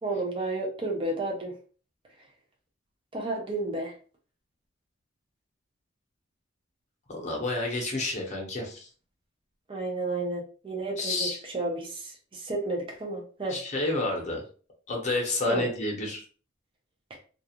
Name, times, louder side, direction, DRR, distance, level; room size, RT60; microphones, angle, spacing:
voice 1, 0.0-1.5 3.1-3.9 9.7-13.6 15.5-15.7 17.1-17.2, right 2 dB, 25° right, 0 dB, 0.5 m, -32 dB
voice 2, 7.1-8.9 11.0-11.4 13.5-14.4 14.9-16.2, left 2 dB, 35° left, 0 dB, 0.8 m, -29 dB
2.3 x 2.3 x 2.8 m, 0.40 s
head